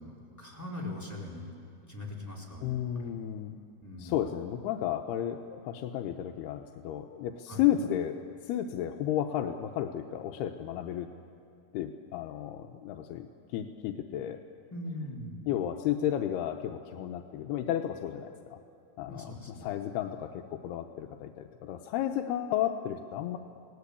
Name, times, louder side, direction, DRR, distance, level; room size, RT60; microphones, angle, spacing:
voice 1, 0.0-1.5 1.9-3.2 3.8-4.3 7.5-7.6 14.7-15.5 19.1-19.7, left 1 dB, 5° left, -3 dB, 3.5 m, -41 dB
voice 2, 2.6-3.6 4.0-11.1 11.7-14.4 15.5-18.6 19.0-19.3 19.6-23.4, left 11 dB, 85° left, 4 dB, 2.9 m, -33 dB
30.0 x 18.5 x 8.4 m, 2.5 s
omnidirectional pair, 4.5 m